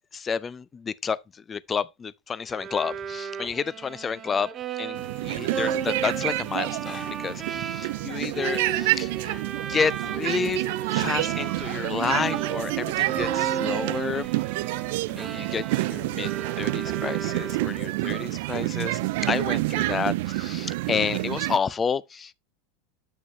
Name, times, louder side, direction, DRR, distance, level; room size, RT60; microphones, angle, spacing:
voice 1, 0.1-4.5 4.8-14.3 15.1-16.3 16.6-19.0 19.3-22.3, left 6 dB, 25° left, 0.4 m, -30 dB
Bowed string instrument, 2.5-11.9 12.1-18.0, right 7 dB, 30° right, 0.8 m, -34 dB
sound 1, 4.9-21.6, right 19 dB, 70° right, 0.3 m, -28 dB
7.8 x 6.1 x 3.2 m
hypercardioid pair, 105°, 0 cm